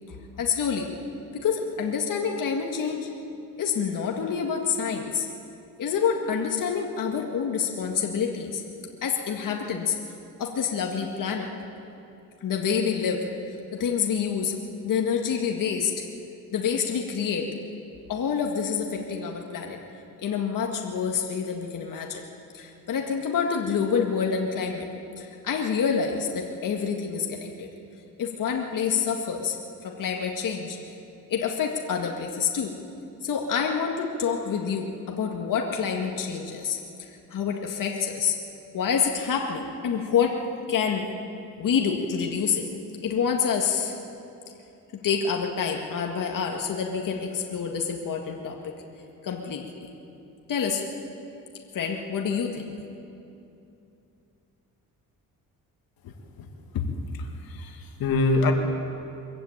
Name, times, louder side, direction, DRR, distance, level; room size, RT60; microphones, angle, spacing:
voice 1, 0.1-0.9 1.4-3.1 3.6-5.3 5.8-8.6 9.0-10.0 10.4-11.5 12.4-15.9 16.5-17.5 18.1-19.8 20.2-22.2 22.5-24.9 25.2-27.7 28.2-29.6 29.8-30.8 31.3-32.8 33.2-38.4 38.7-40.4 40.7-41.1 41.6-42.7 43.0-44.0 44.9-48.7 49.2-49.9 50.5-50.9 51.7-52.7, left 6 dB, 65° left, 1 dB, 2.0 m, -27 dB
voice 2, 56.0-56.5 56.7-56.9 57.1-58.5, left 3 dB, 80° left, 3 dB, 2.2 m, -26 dB
23.5 x 14.5 x 8.9 m, 2.7 s
cardioid pair, 95°, 35 cm